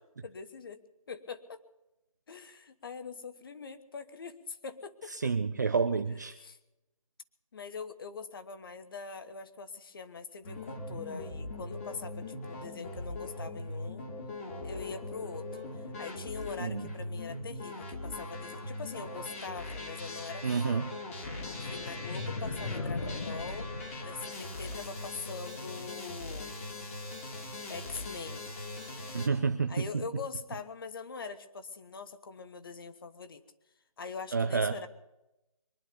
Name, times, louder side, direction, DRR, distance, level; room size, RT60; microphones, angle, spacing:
voice 1, 0.2-0.8 1.1-1.6 2.3-5.3 6.4-6.6 7.5-14.1 14.6-15.6 16.0-20.8 21.6-23.7 24.0-26.6 27.7-28.4 29.7-33.4 34.0-34.9, left 5 dB, 40° left, 11 dB, 1.2 m, -43 dB
voice 2, 5.1-6.4 16.6-16.9 20.4-20.9 29.1-30.0 34.3-34.8, right 5 dB, 30° right, 9 dB, 0.5 m, -29 dB
sound 1, 10.4-29.3, left 2 dB, 25° left, 2.2 m, -41 dB
sound 2, 21.3-24.7, left 3 dB, 60° left, 2.2 m, -38 dB
23.5 x 11.0 x 5.3 m, 0.94 s
figure-of-eight pair, 160°, 18 cm